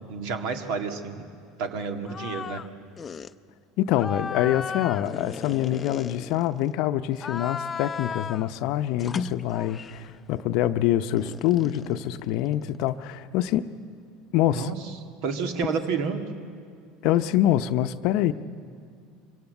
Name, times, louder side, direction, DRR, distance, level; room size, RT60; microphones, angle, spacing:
voice 1, 0.1-1.3 1.6-2.6 14.5-14.9 15.2-16.3, right 5 dB, 70° right, 6 dB, 2.0 m, -30 dB
sound 1, 2.1-2.7 3.0-3.3 3.9-6.7 7.1-8.5 9.0-10.1 11.2-13.0, left 6 dB, 30° left, 0.6 m, -35 dB
voice 2, 3.8-13.7 14.3-14.7 17.0-18.3, left 12 dB, 65° left, 12 dB, 0.7 m, -25 dB
24.5 x 17.0 x 8.0 m, 2.3 s
hypercardioid pair, 90°, 0 cm